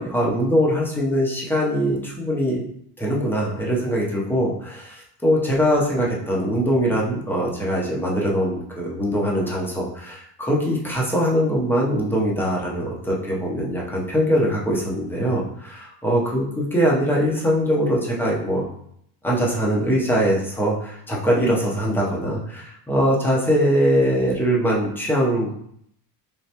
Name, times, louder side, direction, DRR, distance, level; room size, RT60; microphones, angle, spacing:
voice 1, 0.0-2.6 3.0-18.7 19.2-25.5, equal, 5° left, -4 dB, 0.7 m, -22 dB
3.4 x 3.3 x 2.8 m, 0.70 s
cardioid pair, 140°, 44 cm